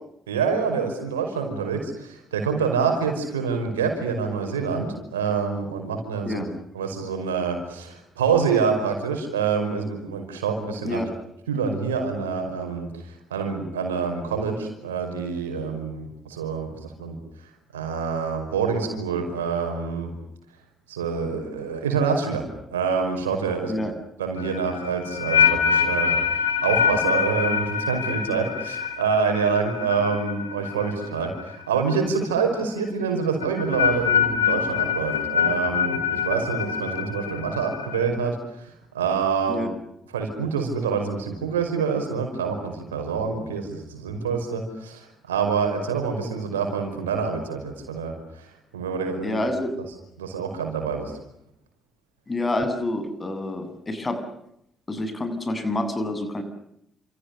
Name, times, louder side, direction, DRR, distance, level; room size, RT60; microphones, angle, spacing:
voice 1, 0.3-6.4 6.7-11.0 11.5-17.1 17.7-20.1 20.9-22.4 22.7-23.9 24.2-39.7 40.1-49.4 50.2-51.1, right 5 dB, 85° right, 4 dB, 5.4 m, -26 dB
sound 1, 24.4-31.5 31.8-32.2 33.4-38.0, left 7 dB, 85° left, 3.4 m, -25 dB
voice 2, 49.2-49.7 52.3-54.2 54.9-56.4, left 1 dB, 30° left, 9 dB, 7.8 m, -27 dB
30.0 x 28.5 x 6.8 m, 0.76 s
figure-of-eight pair, 40°, 0 cm